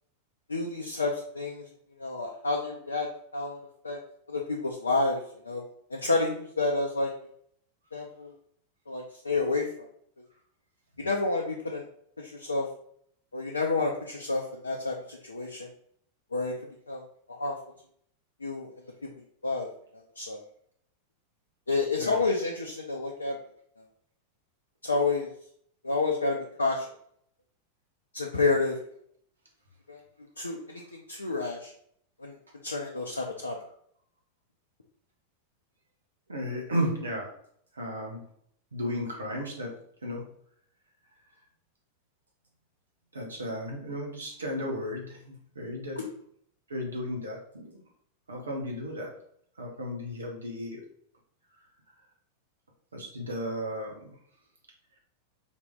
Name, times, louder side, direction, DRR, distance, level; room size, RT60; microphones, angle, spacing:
voice 1, 0.5-1.7 2.0-3.6 3.8-4.0 4.3-5.6 5.9-7.1 7.9-8.3 8.9-9.9 11.0-11.8 12.2-12.7 13.3-15.7 16.3-16.5 16.9-17.0 17.3-17.6 18.4-18.7 19.4-19.7 19.9-20.4 21.7-23.4 24.8-25.3 25.8-26.9 28.1-28.8 29.9-30.0 30.4-31.7 32.2-32.4 32.6-33.6 46.0-46.1, left 3 dB, 80° left, 0 dB, 0.5 m, -29 dB
voice 2, 36.3-37.3 37.7-38.2 38.7-39.8 40.0-40.2 43.1-46.0 46.7-47.8 48.3-49.1 49.6-50.8 52.9-54.1, equal, 75° right, -1 dB, 1.2 m, -34 dB
4.0 x 3.0 x 3.7 m, 0.66 s
figure-of-eight pair, 90°, 0 cm